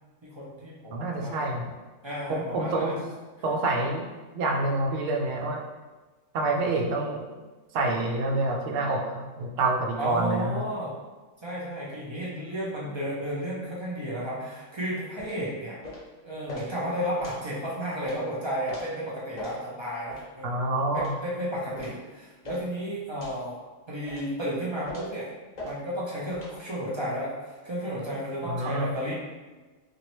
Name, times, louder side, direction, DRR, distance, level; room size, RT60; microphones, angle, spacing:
voice 1, 0.2-1.5 2.0-3.0 10.0-10.9 11.4-15.8 16.2-20.6 20.9-23.6 23.9-25.3 25.6-29.1, equal, 45° right, -6 dB, 0.3 m, -33 dB
voice 2, 0.9-1.7 2.3-3.0 3.4-4.1 4.3-5.6 6.3-7.2 7.7-10.6 20.4-21.1 28.5-28.9, right 2 dB, 80° right, 0 dB, 0.9 m, -27 dB
sound 1, 15.2-15.4 15.8-16.1 16.5-16.7 17.2-17.4 18.0-18.2 18.7-18.9 19.4-19.6 20.1-20.3 21.0-21.2 21.8-22.0 22.4-22.7 23.2-23.4 24.1-24.3 24.9-25.1 25.6-25.7 26.3-26.5, left 1 dB, 40° left, 0.7 m, -40 dB
2.9 x 2.5 x 2.9 m, 1.3 s
omnidirectional pair, 1.3 m